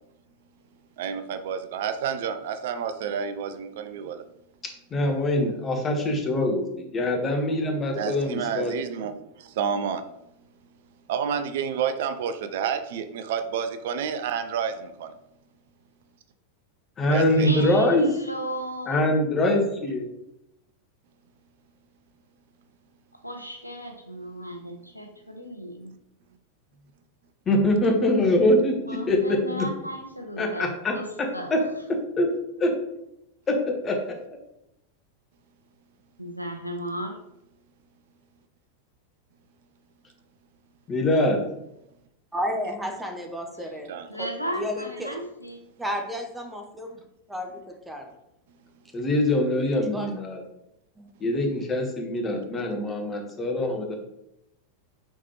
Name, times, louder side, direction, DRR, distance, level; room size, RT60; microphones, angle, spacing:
voice 1, 1.0-4.2 7.9-10.0 11.1-15.1 17.1-17.5 43.9-44.1, right 7 dB, 55° right, 10 dB, 0.4 m, -30 dB
voice 2, 4.9-8.7 17.0-18.1 18.9-20.1 27.5-28.8 29.1-29.7 30.4-32.3 32.6-32.8 33.5-34.0 40.9-41.4 48.9-50.4 51.2-53.9, left 1 dB, 20° left, 2 dB, 0.9 m, -24 dB
voice 3, 17.4-19.1 23.1-25.9 28.8-31.6 36.2-37.2 44.1-45.6, equal, 90° left, 5 dB, 0.6 m, -35 dB
voice 4, 42.3-43.9 44.2-44.3 44.6-45.2 45.8-47.0 47.3-48.1 49.9-50.2 51.0-51.1, equal, 5° right, 3 dB, 0.7 m, -32 dB
4.4 x 4.1 x 2.9 m, 0.83 s
figure-of-eight pair, 90°, 0 cm